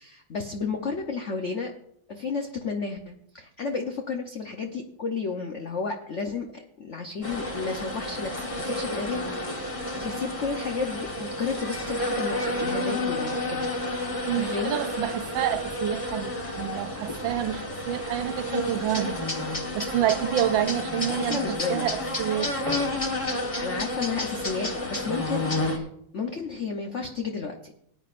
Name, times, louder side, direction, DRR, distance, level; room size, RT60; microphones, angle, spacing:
voice 1, 0.0-1.7 2.1-9.6 10.0-13.7 14.3-14.8 21.1-21.9 23.6-25.9 26.1-27.7, left 4 dB, 55° left, 0.8 m, -32 dB
sound 1, 7.2-25.8, left 1 dB, 20° left, 1.1 m, -30 dB
voice 2, 14.2-19.2 19.7-22.5, right 11 dB, 80° right, 1.4 m, -28 dB
18.5 x 9.6 x 2.5 m
omnidirectional pair, 2.2 m